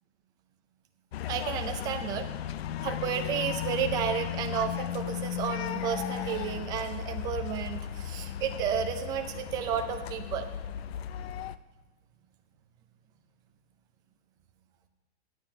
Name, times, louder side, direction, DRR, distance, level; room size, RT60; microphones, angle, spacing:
sound 1, 1.1-11.6, left 10 dB, 60° left, 0.6 m, -35 dB
voice 1, 1.3-2.3 2.8-10.5, right 8 dB, 10° right, 6 dB, 0.4 m, -32 dB
16.5 x 9.7 x 3.3 m, 1.1 s
hypercardioid pair, 150°, 34 cm